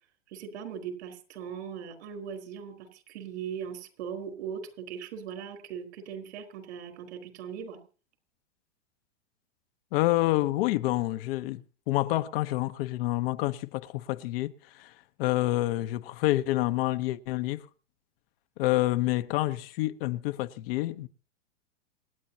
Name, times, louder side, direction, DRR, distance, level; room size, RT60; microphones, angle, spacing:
voice 1, 0.3-7.8, right 7 dB, 70° right, 4.4 m, -39 dB
voice 2, 9.9-14.9 15.2-17.7 18.6-21.1, left 17 dB, 50° left, 1.0 m, -28 dB
27.5 x 9.2 x 2.9 m
hypercardioid pair, 130°, 36 cm